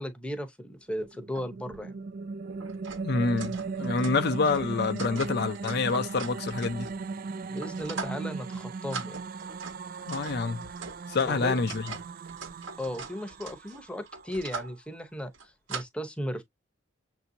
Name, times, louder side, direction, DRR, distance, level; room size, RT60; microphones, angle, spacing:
voice 1, 0.0-1.9 7.5-9.2 11.2-11.6 12.8-16.4, equal, 5° left, 0.8 m, -36 dB
sound 1, 1.0-14.4, right 4 dB, 45° right, 0.4 m, -38 dB
sound 2, 1.3-1.5 1.7-1.8 2.4-7.1 7.6-8.2 8.5-8.6 8.9-14.8 15.3-15.8, right 4 dB, 70° right, 1.2 m, -42 dB
voice 2, 3.0-6.9 10.1-10.6 11.1-11.9, left 4 dB, 55° left, 0.5 m, -27 dB
6.9 x 2.7 x 2.6 m
head